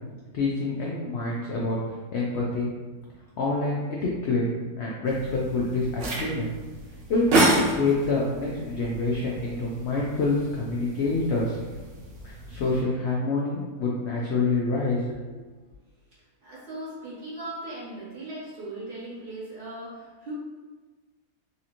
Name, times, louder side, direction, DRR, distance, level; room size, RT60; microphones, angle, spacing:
voice 1, 0.3-1.8 2.1-2.7 3.4-4.5 4.8-6.5 7.1-11.6 12.2-15.1, left 3 dB, 75° left, -3 dB, 0.6 m, -27 dB
sound 1, 5.1-12.8, right 2 dB, 55° right, 0.9 m, -30 dB
voice 2, 16.1-20.3, right 1 dB, 75° right, -9 dB, 2.2 m, -39 dB
4.1 x 2.5 x 2.9 m, 1.3 s
omnidirectional pair, 1.7 m